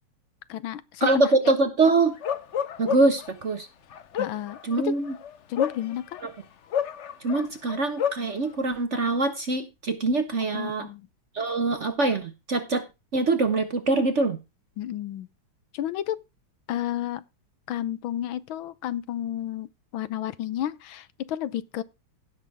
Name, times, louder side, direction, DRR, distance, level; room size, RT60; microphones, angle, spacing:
voice 1, 0.5-1.1 4.1-4.9 5.5-6.2 10.5-11.1 14.8-15.3 15.7-16.2 16.7-17.2 17.7-21.8, left 11 dB, 75° left, 1.5 m, -31 dB
voice 2, 1.0-2.1 2.8-3.7 4.6-5.1 6.2-6.3 7.2-10.9 11.3-12.8 13.1-14.4, right 3 dB, 45° right, 1.0 m, -24 dB
Bark, 2.2-3.3 3.9-6.3 6.7-8.3, left 8 dB, 60° left, 0.7 m, -29 dB
16.5 x 6.3 x 3.5 m
omnidirectional pair, 2.2 m